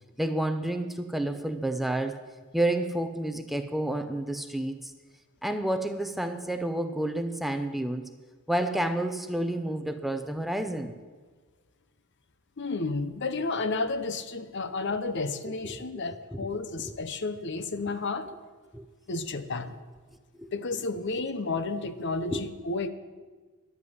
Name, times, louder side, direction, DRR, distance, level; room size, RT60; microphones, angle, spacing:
voice 1, 0.2-2.2 2.5-4.9 5.4-8.1 8.5-10.9 15.5-15.6 15.9-16.0 16.3-16.4 17.7-17.8 18.3-18.4 18.7-18.9 20.4-20.5 22.2-22.4, right 1 dB, ahead, 8 dB, 0.6 m, -30 dB
voice 2, 12.6-18.3 19.1-19.7 20.5-22.9, left 3 dB, 55° left, 11 dB, 0.8 m, -31 dB
11.0 x 8.2 x 9.5 m, 1.4 s
head